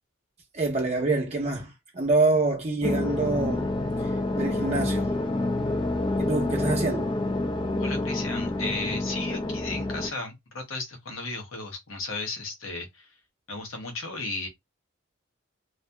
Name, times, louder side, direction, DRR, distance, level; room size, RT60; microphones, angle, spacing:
voice 1, 0.5-5.1 6.2-7.1, right 3 dB, 35° right, 0.6 m, -26 dB
sound 1, 2.8-10.1, left 2 dB, 25° left, 0.3 m, -28 dB
voice 2, 7.8-13.1 13.5-14.5, left 3 dB, 85° left, 0.9 m, -35 dB
2.7 x 2.4 x 2.2 m
head